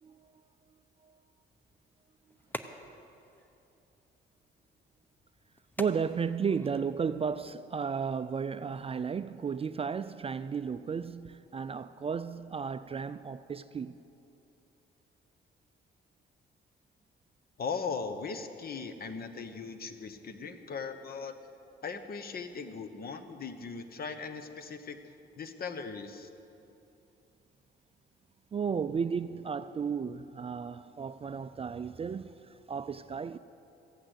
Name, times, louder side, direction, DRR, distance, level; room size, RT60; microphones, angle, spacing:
voice 1, 0.0-0.4 1.0-1.2 5.8-14.0 28.5-33.4, right 6 dB, 30° right, 0.4 m, -34 dB
sound 1, 1.5-7.5, left 1 dB, 10° left, 0.8 m, -49 dB
voice 2, 17.6-21.4 21.8-26.3, left 5 dB, 50° left, 1.1 m, -39 dB
15.5 x 8.9 x 8.0 m
cardioid pair, 90°, 20 cm